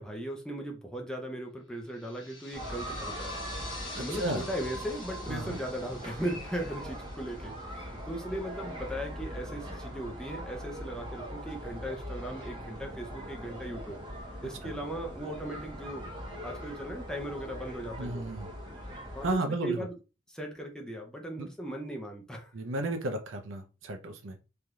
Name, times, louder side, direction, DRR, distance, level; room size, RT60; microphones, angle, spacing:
voice 1, 0.0-3.4 3.6-14.0 14.4-16.1 16.4-18.3 19.1-19.9 20.3-22.5, right 1 dB, 5° left, 0.5 m, -38 dB
sound 1, 1.9-8.2, left 3 dB, 80° left, 1.3 m, -47 dB
sound 2, 2.5-19.4, equal, 25° right, 0.8 m, -41 dB
voice 2, 3.9-4.5 5.3-5.6 14.6-14.7 18.0-18.5 19.2-19.9 21.4-21.5 22.5-24.4, right 2 dB, 85° right, 0.6 m, -33 dB
3.3 x 2.7 x 2.3 m
head